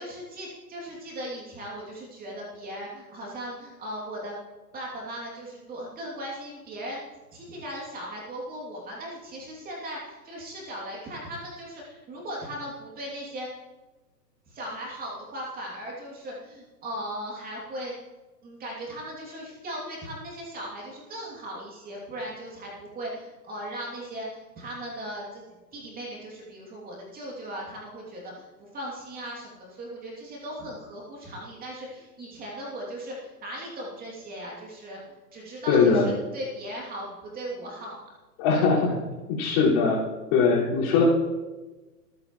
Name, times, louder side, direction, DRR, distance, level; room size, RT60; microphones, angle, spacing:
voice 1, 0.0-4.4 4.7-7.1 7.3-13.5 14.5-17.9 18.4-25.4 25.7-35.0 35.3-38.0, equal, 15° right, -3 dB, 2.8 m, -38 dB
voice 2, 35.7-36.1 38.4-39.0 39.3-40.0 40.3-41.0, left 5 dB, 35° left, -6 dB, 5.0 m, -21 dB
26.0 x 9.6 x 3.1 m, 1.2 s
hypercardioid pair, 125°, 49 cm